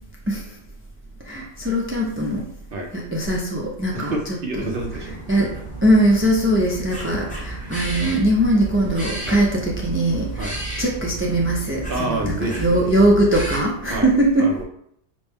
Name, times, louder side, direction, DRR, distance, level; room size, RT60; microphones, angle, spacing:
voice 1, 1.3-2.4 3.1-4.1 5.3-5.5 5.8-10.5 10.8-12.3 12.6-14.5, right 1 dB, 20° right, -3 dB, 0.3 m, -20 dB
voice 2, 3.9-5.6 7.5-7.8 9.3-9.4 10.4-10.6 11.9-13.0 13.9-14.6, right 2 dB, 55° right, 1 dB, 0.9 m, -29 dB
sound 1, 4.8-13.6, right 2 dB, 5° left, 1.0 m, -32 dB
6.1 x 2.1 x 3.4 m, 0.68 s
omnidirectional pair, 1.2 m